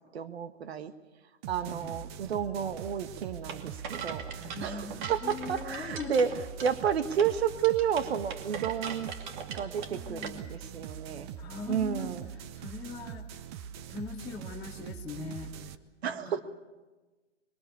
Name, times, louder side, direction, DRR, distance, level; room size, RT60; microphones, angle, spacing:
voice 1, 0.1-0.9 1.5-6.3 6.6-9.1 9.5-11.3 11.7-12.3 16.0-16.4, right 8 dB, 55° right, 10 dB, 1.7 m, -31 dB
sound 1, 1.4-15.7, right 9 dB, 20° right, 0.7 m, -43 dB
voice 2, 1.6-2.0 4.4-6.3 9.9-10.4 11.4-12.2 12.5-13.4 13.9-15.5 16.0-16.4, left 4 dB, 10° left, -5 dB, 1.5 m, -41 dB
sound 2, 3.5-10.3, right 6 dB, 40° right, 2.6 m, -41 dB
25.0 x 23.5 x 7.0 m, 1.2 s
hypercardioid pair, 140°, 37 cm